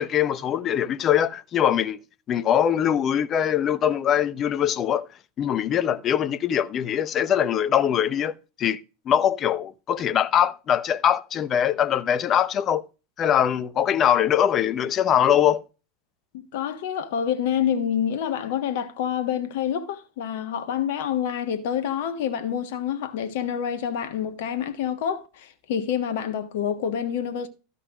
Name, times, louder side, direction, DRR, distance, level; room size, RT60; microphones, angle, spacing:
voice 1, 0.0-2.0 2.3-5.1 5.4-8.3 8.6-8.8 9.1-12.8 13.2-15.6, left 9 dB, 35° left, 0.8 m, -22 dB
voice 2, 16.3-27.5, left 9 dB, 55° left, 1.4 m, -27 dB
13.5 x 5.7 x 5.0 m
figure-of-eight pair, 85°, 0 cm